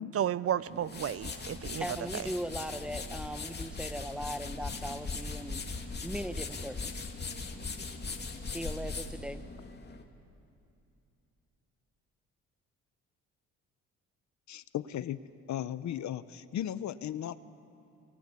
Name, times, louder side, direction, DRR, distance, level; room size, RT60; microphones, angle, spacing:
voice 1, 0.1-2.3, right 10 dB, 50° right, 0.6 m, -33 dB
sound 1, 0.7-10.0, left 4 dB, 35° left, 2.7 m, -39 dB
voice 2, 1.8-5.6 6.0-7.1 8.4-9.4, equal, 5° right, 1.2 m, -39 dB
voice 3, 14.5-15.2 15.5-17.4, left 11 dB, 70° left, 1.0 m, -36 dB
28.5 x 24.5 x 8.5 m
cardioid pair, 90°, 30 cm